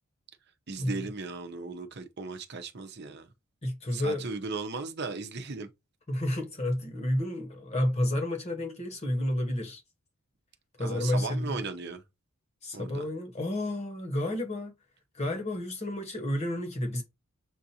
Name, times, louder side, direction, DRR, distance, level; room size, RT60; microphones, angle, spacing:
voice 1, 0.7-3.3 3.9-5.7 10.8-12.0 12.7-13.0, right 4 dB, 50° right, 0.7 m, -37 dB
voice 2, 3.6-4.3 6.1-9.8 10.8-11.6 12.6-14.7 15.1-17.0, left 1 dB, 30° left, 1.2 m, -30 dB
7.1 x 2.5 x 2.8 m
head